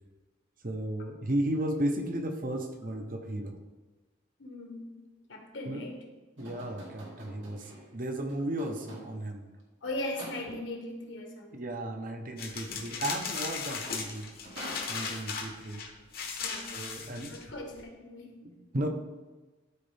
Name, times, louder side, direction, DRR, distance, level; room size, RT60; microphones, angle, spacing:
voice 1, 0.6-3.6 5.6-5.8 6.4-9.5 11.5-14.3 14.9-15.9 16.7-17.4 18.4-18.9, right 1 dB, 45° right, 5 dB, 0.8 m, -34 dB
voice 2, 4.4-4.9 5.3-6.0 9.8-11.6 16.4-18.4, left 1 dB, 70° left, 2 dB, 1.5 m, -39 dB
sound 1, 6.4-9.4 10.2-10.8 13.5-13.6 13.9-15.4, right 1 dB, 80° right, 2.1 m, -47 dB
sound 2, 12.4-17.8, left 5 dB, 50° left, 1.1 m, -37 dB
13.0 x 4.5 x 3.4 m, 1.2 s
head